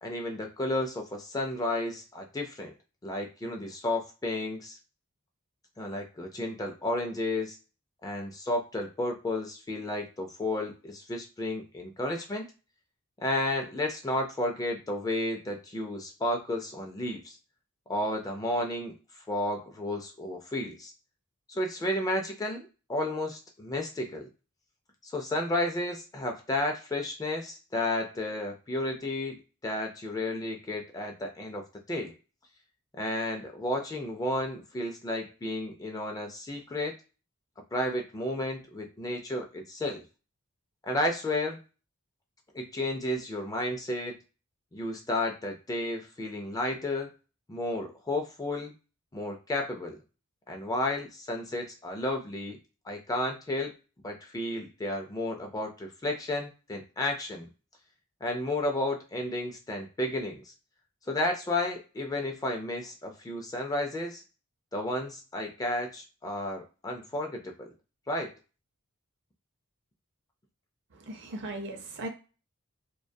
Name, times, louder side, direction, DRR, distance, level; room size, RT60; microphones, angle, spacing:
voice 1, 0.0-2.7 3.0-4.8 5.8-7.6 8.0-12.4 13.2-17.4 17.9-18.9 19.3-20.9 21.5-24.3 25.0-29.4 29.6-32.2 32.9-36.9 37.7-40.0 40.8-41.6 42.5-44.2 44.7-47.1 47.5-48.7 49.1-50.0 50.5-52.6 52.9-53.7 54.0-57.5 58.2-60.4 61.1-64.2 64.7-67.7 68.1-68.3, left 1 dB, 15° left, 2 dB, 0.4 m, -32 dB
voice 2, 70.9-72.1, right 2 dB, 55° right, 4 dB, 0.6 m, -38 dB
2.2 x 2.2 x 2.6 m, 0.32 s
head